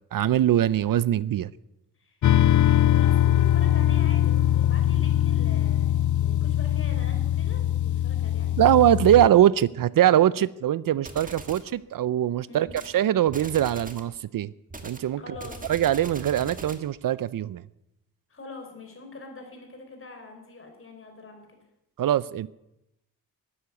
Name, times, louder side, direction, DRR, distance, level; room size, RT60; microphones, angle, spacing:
voice 1, 0.1-1.5 8.6-12.7 12.9-14.5 14.8-15.2 15.7-17.6 22.0-22.5, right 11 dB, 65° right, 0.5 m, -22 dB
sound 1, 2.2-9.3, left 12 dB, 55° left, 0.5 m, -22 dB
voice 2, 2.8-8.6 12.5-12.7 15.2-15.7 18.3-21.6, left 3 dB, 35° left, 3.9 m, -43 dB
sound 2, 11.0-11.7 12.7-13.0 13.3-14.1 14.7-16.9, right 2 dB, 20° right, 1.6 m, -41 dB
13.0 x 11.5 x 9.4 m
wide cardioid pair, 155°, 36 cm